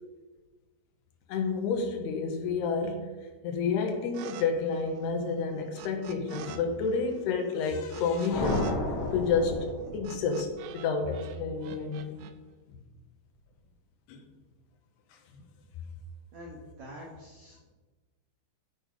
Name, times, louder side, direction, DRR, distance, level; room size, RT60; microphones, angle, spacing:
voice 1, 1.3-3.1 3.4-8.8 9.1-9.7 9.9-12.3 14.1-14.2, left 5 dB, 75° left, 4 dB, 3.1 m, -30 dB
sound 1, 4.1-4.5 4.7-6.6 6.9-10.9 11.1-12.3, right 9 dB, 85° right, 2.8 m, -46 dB
sound 2, 8.3-10.5, left 1 dB, 45° left, 2.6 m, -32 dB
voice 2, 16.3-17.7, equal, 60° right, -1 dB, 2.0 m, -46 dB
12.5 x 7.0 x 5.3 m, 1.3 s
omnidirectional pair, 5.0 m